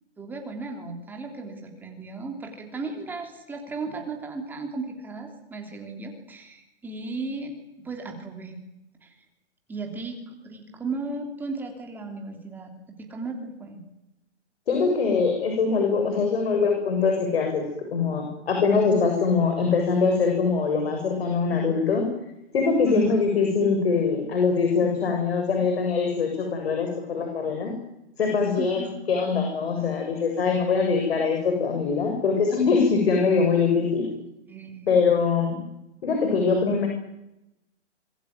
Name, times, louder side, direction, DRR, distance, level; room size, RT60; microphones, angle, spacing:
voice 1, 0.2-7.5 7.8-8.6 9.0-9.1 9.7-13.8 22.9-23.3 28.6-29.0 34.5-35.1, right 3 dB, 5° right, 3 dB, 3.1 m, -35 dB
voice 2, 14.7-22.0 22.5-27.7 28.2-34.1 34.9-35.6 36.0-36.9, left 5 dB, 55° left, 3 dB, 7.5 m, -23 dB
26.0 x 21.5 x 9.6 m, 0.87 s
hypercardioid pair, 170°, 35 cm